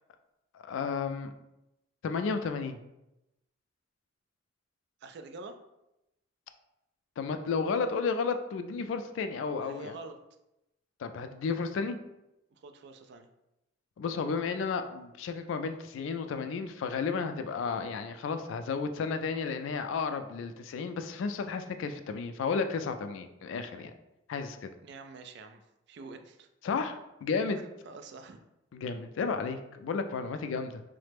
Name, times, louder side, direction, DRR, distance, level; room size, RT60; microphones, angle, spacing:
voice 1, 0.5-1.3 2.0-2.8 7.2-10.0 11.0-12.0 14.0-23.9 24.3-24.7 26.6-27.6 28.7-30.8, left 5 dB, 75° left, 8 dB, 0.3 m, -32 dB
voice 2, 5.0-5.6 9.6-10.2 12.5-13.3 24.8-25.6 25.9-26.5 27.9-28.4, right 3 dB, 60° right, 7 dB, 0.3 m, -46 dB
3.2 x 2.0 x 3.3 m, 0.90 s
head